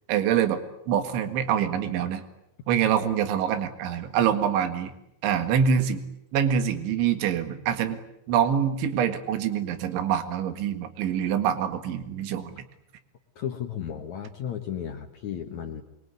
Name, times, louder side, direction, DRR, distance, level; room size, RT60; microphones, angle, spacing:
voice 1, 0.1-2.2 2.7-4.9 5.2-6.0 6.3-8.0 8.3-12.6, right 8 dB, 75° right, 10 dB, 4.1 m, -25 dB
voice 2, 13.4-15.8, left 9 dB, 70° left, 5 dB, 1.7 m, -34 dB
24.5 x 24.0 x 9.7 m, 0.80 s
omnidirectional pair, 5.6 m